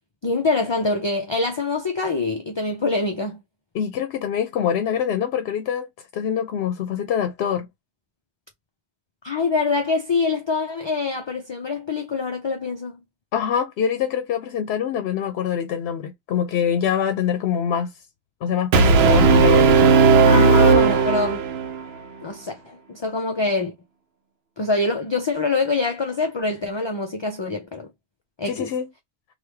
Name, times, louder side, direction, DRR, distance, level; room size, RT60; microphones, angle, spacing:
voice 1, 0.2-3.4 9.2-13.0 20.3-21.5 22.2-23.7 24.6-27.9 28.4-28.7, left 3 dB, 35° left, 0.4 m, -25 dB
voice 2, 3.7-7.7 13.3-17.9 18.4-19.9 28.4-28.9, left 8 dB, 90° left, 0.8 m, -25 dB
Brass instrument, 18.7-21.8, right 4 dB, 80° right, 0.8 m, -15 dB
3.1 x 2.5 x 3.3 m
omnidirectional pair, 1.0 m